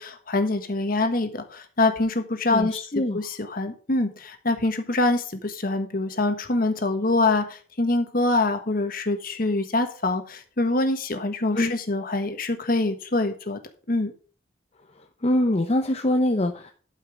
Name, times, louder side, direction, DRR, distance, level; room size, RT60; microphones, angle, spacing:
voice 1, 0.0-13.6 13.9-14.1, left 2 dB, 50° left, 7 dB, 1.4 m, -25 dB
voice 2, 2.5-3.2 11.5-11.7 14.9-16.7, left 1 dB, 35° left, 4 dB, 0.7 m, -24 dB
12.0 x 5.6 x 5.0 m, 0.39 s
head